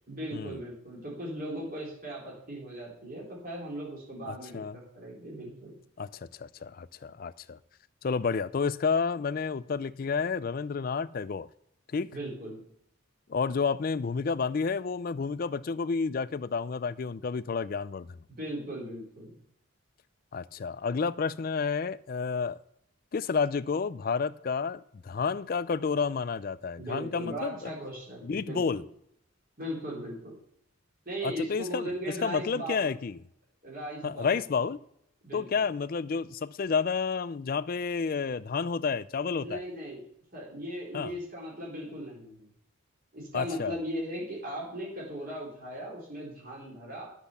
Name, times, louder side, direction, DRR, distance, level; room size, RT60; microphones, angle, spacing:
voice 1, 0.1-5.7 12.1-12.6 18.4-19.3 26.8-28.8 29.6-30.3 31.1-32.9 33.6-34.4 35.2-35.6 39.4-40.0 40.3-42.5 43.1-47.1, equal, 45° right, 4.1 m, -38 dB
voice 2, 4.3-4.8 6.0-7.6 8.0-11.5 11.9-12.1 13.3-18.2 20.3-22.6 23.1-27.7 28.2-28.8 31.2-33.2 34.0-34.8 35.3-39.6 40.9-41.1 43.3-43.8, left 5 dB, 45° left, 0.4 m, -30 dB
10.0 x 6.6 x 7.0 m
head